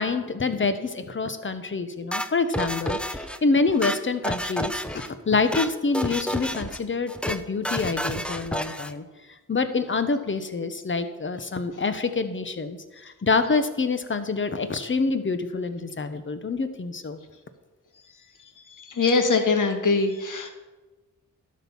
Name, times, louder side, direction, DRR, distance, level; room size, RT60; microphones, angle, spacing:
voice 1, 0.0-9.0 9.5-17.2, left 4 dB, 35° left, 10 dB, 1.0 m, -26 dB
sound 1, 2.1-3.4 3.7-5.1 5.4-5.7 5.9-6.8 7.1-7.4 7.6-8.9, equal, 5° left, 0.7 m, -30 dB
voice 2, 19.0-20.5, left 4 dB, 65° left, 6 dB, 1.5 m, -22 dB
12.0 x 6.4 x 5.6 m, 1.2 s
cardioid pair, 60°, 34 cm